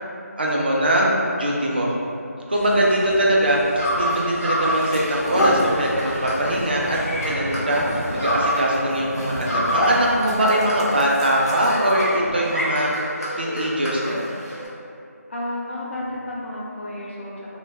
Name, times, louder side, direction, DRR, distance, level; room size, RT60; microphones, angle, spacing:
voice 1, 0.4-2.0 2.5-12.9 13.4-14.4, right 1 dB, 40° right, -3 dB, 0.4 m, -22 dB
sound 1, 2.5-8.4, equal, ahead, 0.8 m, -37 dB
sound 2, 3.8-8.8 9.1-14.7, equal, 65° left, 0.9 m, -28 dB
sound 3, 4.0-4.2 4.7-12.1, equal, 85° left, 0.6 m, -28 dB
voice 2, 15.3-17.6, left 1 dB, 45° left, -6 dB, 0.6 m, -31 dB
2.5 x 2.2 x 3.3 m, 2.5 s
figure-of-eight pair, 170°, 9 cm